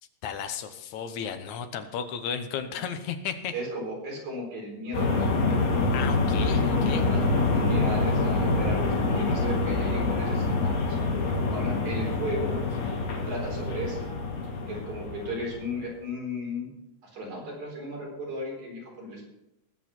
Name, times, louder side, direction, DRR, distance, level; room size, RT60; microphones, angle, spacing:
voice 1, 0.2-3.5 5.9-7.1, left 7 dB, 85° left, 9 dB, 2.4 m, -34 dB
voice 2, 3.5-5.4 7.0-12.6 13.3-14.0 14.7-16.7 17.0-19.3, equal, 80° right, -2 dB, 5.8 m, -35 dB
sound 1, 4.9-15.8, left 3 dB, 65° left, 3.5 m, -26 dB
19.0 x 8.4 x 4.4 m, 0.91 s
omnidirectional pair, 3.3 m